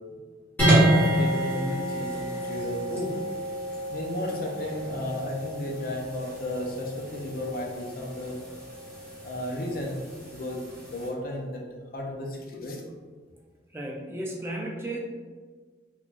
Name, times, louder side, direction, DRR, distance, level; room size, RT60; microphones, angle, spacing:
sound 1, 0.6-11.1, right 1 dB, 10° left, 1.3 m, -29 dB
voice 1, 0.9-3.1 3.9-8.4 9.2-10.0 10.3-10.6 10.9-11.6 11.9-12.8, left 1 dB, 50° left, 0 dB, 0.6 m, -33 dB
voice 2, 13.7-15.0, right 1 dB, 15° right, -2 dB, 0.4 m, -34 dB
3.9 x 3.0 x 2.4 m, 1.5 s
head